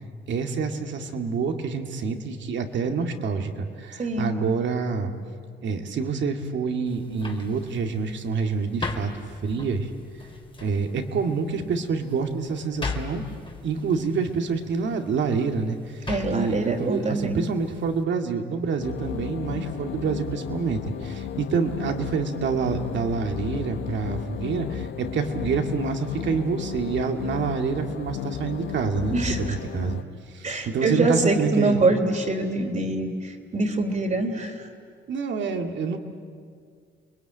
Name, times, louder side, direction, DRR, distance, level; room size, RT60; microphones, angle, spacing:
voice 1, 0.3-5.1 5.6-9.1 9.4-9.9 10.6-13.2 13.6-30.0 30.3-31.8 35.1-36.0, right 5 dB, 65° right, 4 dB, 2.3 m, -27 dB
voice 2, 4.0-4.3 16.1-17.4 29.1-29.6 30.4-34.6, right 2 dB, 40° right, 3 dB, 3.4 m, -24 dB
sound 1, 6.9-18.0, left 4 dB, 25° left, 2.9 m, -39 dB
sound 2, 18.8-30.0, left 9 dB, 75° left, 1.1 m, -34 dB
30.0 x 21.0 x 9.1 m, 2.2 s
cardioid pair, 90°, 20 cm